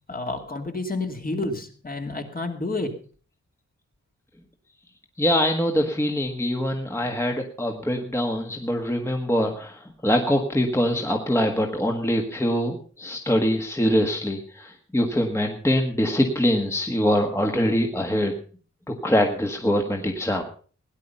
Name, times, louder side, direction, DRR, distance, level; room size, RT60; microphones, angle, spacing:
voice 1, 0.1-3.0, left 2 dB, 30° left, 4 dB, 2.4 m, -30 dB
voice 2, 5.2-18.3 18.9-20.4, equal, 10° left, 3 dB, 1.5 m, -23 dB
17.5 x 10.5 x 5.5 m, 0.42 s
wide cardioid pair, 145°, 29 cm